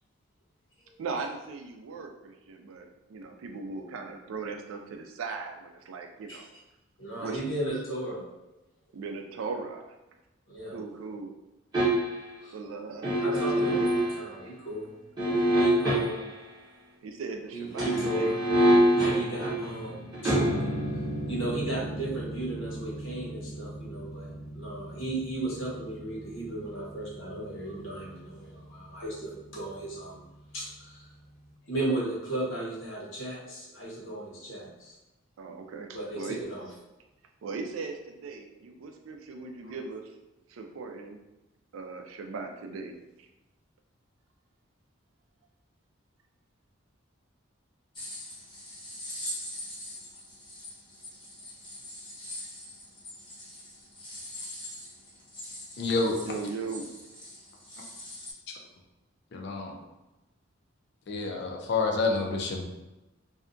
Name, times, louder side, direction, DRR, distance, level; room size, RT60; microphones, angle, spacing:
voice 1, 1.0-6.5 7.2-7.4 8.9-10.0 10.7-11.3 12.5-13.9 14.4-14.5 17.0-18.4 35.4-36.4 37.4-40.1 40.5-41.2 41.7-43.0 56.2-56.9, right 4 dB, 75° right, 4 dB, 0.4 m, -38 dB
voice 2, 7.0-8.2 10.5-10.8 12.4-12.5 13.2-14.9 15.3-16.2 17.5-18.4 18.9-20.4 20.9-21.0 21.3-30.3 30.5-31.1 31.7-34.9 35.9-36.7, right 2 dB, 75° left, -6 dB, 1.0 m, -35 dB
sound 1, 11.7-12.3 13.0-14.2 15.2-16.4 17.6-28.6 28.9-29.0, right 1 dB, 20° right, 0.8 m, -28 dB
sound 2, 47.9-58.3, left 1 dB, 25° left, 0.7 m, -43 dB
voice 3, 55.8-56.2 59.3-59.7 61.1-62.6, left 3 dB, 55° left, 1 dB, 0.4 m, -28 dB
2.7 x 2.2 x 2.5 m, 0.99 s
head